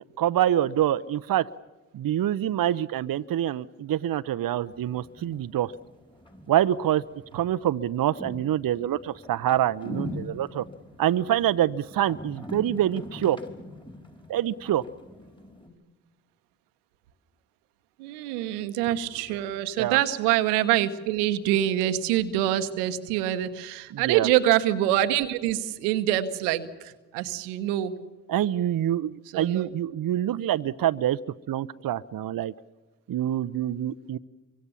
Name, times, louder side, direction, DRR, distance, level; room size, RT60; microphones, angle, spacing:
voice 1, 0.2-1.5 1.9-5.7 6.5-7.0 7.3-10.6 11.0-13.4 14.3-14.8 19.8-20.0 23.9-24.3 28.3-31.2 31.5-32.5 33.1-34.2, right 11 dB, 50° right, 14 dB, 0.8 m, -26 dB
sound 1, 4.7-15.7, left 1 dB, 10° left, 4.8 m, -42 dB
voice 2, 18.0-28.0 29.3-29.7, right 12 dB, 90° right, 10 dB, 1.1 m, -25 dB
25.0 x 24.5 x 7.0 m, 1.2 s
hypercardioid pair, 40°, 45 cm